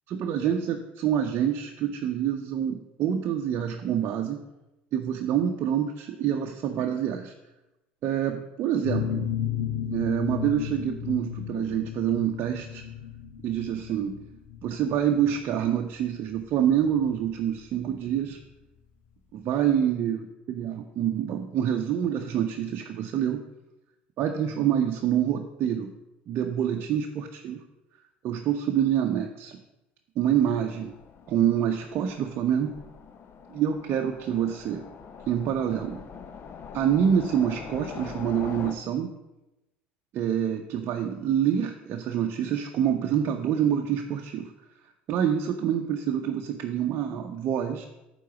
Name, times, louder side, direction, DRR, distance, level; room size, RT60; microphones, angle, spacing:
voice 1, 0.1-4.4 4.9-7.3 8.0-9.3 9.9-12.8 13.4-14.2 14.6-18.4 19.3-23.4 24.2-25.9 26.3-27.6 28.2-29.6 30.2-30.9 31.3-32.7 33.5-34.8 35.3-36.0 36.7-39.2 40.1-44.5 45.1-47.9, right 9 dB, 50° right, 3 dB, 0.7 m, -26 dB
sound 1, 8.8-18.2, left 9 dB, 60° left, 1.4 m, -34 dB
Train, 30.5-38.7, left 6 dB, 40° left, 0.8 m, -43 dB
9.3 x 3.9 x 7.1 m, 0.96 s
figure-of-eight pair, 65°, 6 cm